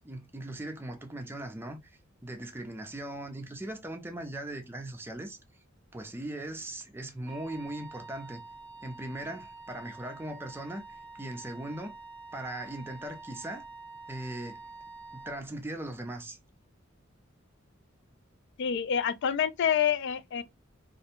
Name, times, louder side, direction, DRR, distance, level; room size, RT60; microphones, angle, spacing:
voice 1, 0.0-1.8 2.2-5.4 5.9-8.4 8.8-11.9 12.3-13.7 14.1-14.6 15.1-16.4, right 1 dB, 10° right, 0.5 m, -39 dB
Wind instrument woodwind instrument, 7.3-15.4, right 3 dB, 5° left, 0.9 m, -47 dB
voice 2, 18.6-20.4, left 8 dB, 60° left, 0.3 m, -27 dB
2.5 x 2.1 x 2.8 m
head